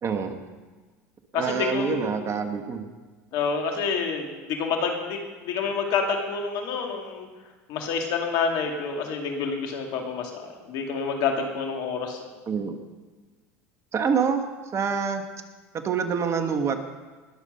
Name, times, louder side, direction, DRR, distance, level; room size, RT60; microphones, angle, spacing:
voice 1, 0.0-0.4 1.3-2.9 12.5-12.8 13.9-14.4 14.7-15.2 15.7-16.9, right 6 dB, 40° right, 7 dB, 1.4 m, -26 dB
voice 2, 1.3-2.1 3.3-7.3 7.7-10.4 10.7-12.2, left 5 dB, 60° left, 3 dB, 2.3 m, -28 dB
20.0 x 7.3 x 5.5 m, 1.3 s
hypercardioid pair, 85°, 8 cm